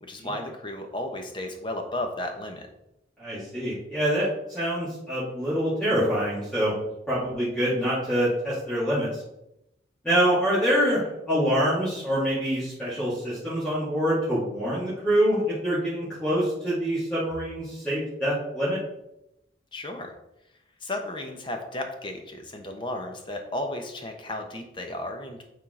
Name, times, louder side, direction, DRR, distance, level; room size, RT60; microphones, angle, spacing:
voice 1, 0.0-2.7 19.7-20.1 20.8-25.4, left 1 dB, 25° left, 4 dB, 0.9 m, -34 dB
voice 2, 3.2-6.7 7.1-9.2 10.0-18.8, equal, 5° left, -11 dB, 2.0 m, -25 dB
8.5 x 3.7 x 3.7 m, 0.86 s
head